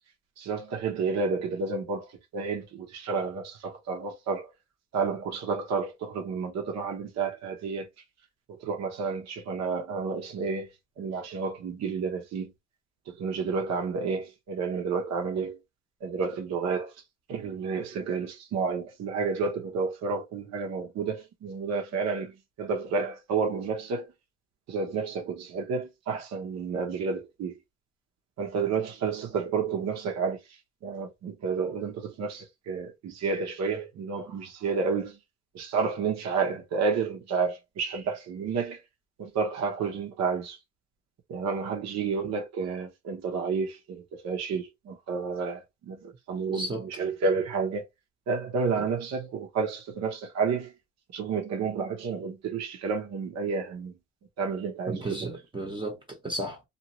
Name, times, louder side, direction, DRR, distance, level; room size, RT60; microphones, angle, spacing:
voice 1, 0.4-4.5 4.9-7.9 8.6-10.7 11.0-12.5 13.1-15.6 16.0-16.9 17.3-24.1 24.7-27.5 28.4-30.4 30.8-35.2 35.5-38.8 39.2-40.6 41.3-47.9 48.3-50.7 51.1-53.9 54.4-55.0, right 5 dB, 60° right, 1.0 m, -30 dB
voice 2, 46.5-46.9 48.8-48.9 54.9-56.6, right 1 dB, 15° right, 1.0 m, -34 dB
2.7 x 2.5 x 2.9 m
cardioid pair, 115°, 30 cm